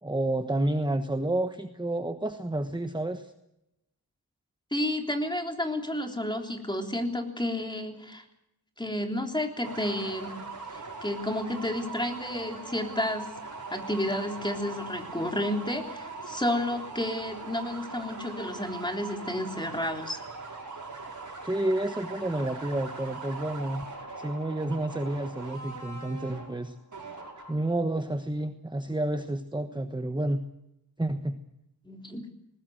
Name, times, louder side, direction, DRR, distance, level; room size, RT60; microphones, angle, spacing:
voice 1, 0.0-3.3 21.4-23.9 24.2-26.7 27.5-30.4 31.0-31.4, right 1 dB, 10° right, 8 dB, 1.2 m, -30 dB
voice 2, 4.7-8.2 8.8-10.4 11.0-13.3 13.7-20.2 31.8-32.3, left 1 dB, 10° left, 3 dB, 3.5 m, -31 dB
sound 1, 9.6-27.8, right 3 dB, 50° right, 5.5 m, -41 dB
20.5 x 19.5 x 7.9 m, 0.86 s
wide cardioid pair, 95°, 38 cm